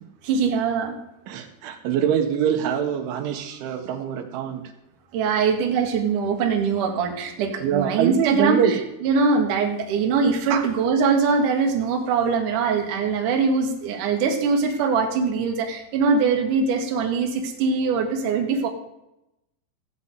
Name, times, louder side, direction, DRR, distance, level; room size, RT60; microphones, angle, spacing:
voice 1, 0.2-1.0 5.1-18.7, right 5 dB, 55° right, 2 dB, 2.7 m, -22 dB
voice 2, 1.3-4.6 7.6-8.7 10.5-10.7, right 8 dB, 90° right, 5 dB, 3.7 m, -24 dB
15.0 x 5.5 x 8.2 m, 0.89 s
omnidirectional pair, 5.3 m